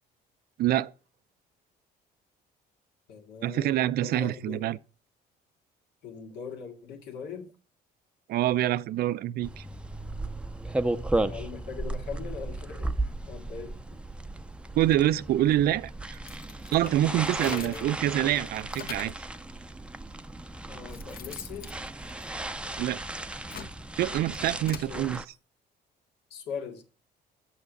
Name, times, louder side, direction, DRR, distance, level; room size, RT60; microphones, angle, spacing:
voice 1, 0.6-0.9 3.4-4.8 8.3-9.6 14.7-15.9 16.7-19.1 22.8-23.0 24.0-25.2, right 13 dB, 65° right, 0.5 m, -26 dB
voice 2, 3.1-4.7 6.0-7.5 11.3-13.8 17.4-18.0 20.7-21.8 24.7-25.1 26.3-26.8, left 6 dB, 80° left, 2.1 m, -41 dB
sound 1, 9.4-25.3, right 2 dB, 5° right, 0.6 m, -35 dB
sound 2, 16.1-18.0 18.4-19.3 20.1-20.2 20.6-22.8 23.2-24.9, left 7 dB, 60° left, 1.3 m, -44 dB
8.4 x 6.7 x 6.5 m
cardioid pair, 110°, 17 cm